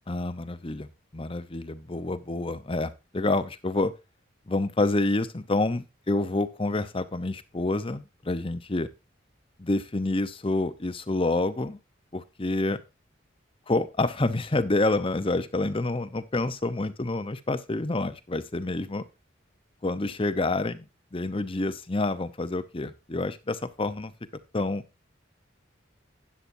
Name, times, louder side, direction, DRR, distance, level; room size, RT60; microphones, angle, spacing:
voice 1, 0.1-0.9 1.1-3.9 4.5-8.9 9.6-11.8 12.1-12.8 13.7-19.0 19.8-24.1 24.5-24.8, left 2 dB, 30° left, 12 dB, 0.8 m, -28 dB
13.0 x 9.8 x 2.7 m, 0.25 s
head